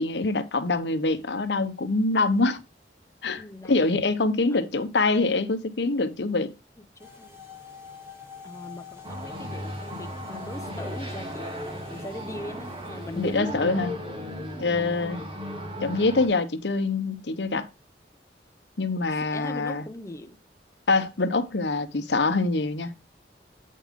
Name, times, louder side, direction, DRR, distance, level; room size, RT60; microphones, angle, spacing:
voice 1, 0.0-2.6 3.2-6.5 13.2-13.9 14.6-15.2 15.8-17.7 18.8-19.8 20.9-22.9, left 3 dB, 75° left, 0.9 m, -25 dB
voice 2, 3.4-3.8 7.0-7.4 8.4-11.5 11.9-13.8 19.1-20.4, left 1 dB, 15° left, 0.6 m, -39 dB
sound 1, 7.0-13.4, left 6 dB, 15° right, 1.5 m, -46 dB
sound 2, 9.0-16.3, equal, 30° right, 2.2 m, -36 dB
8.4 x 5.5 x 3.6 m
head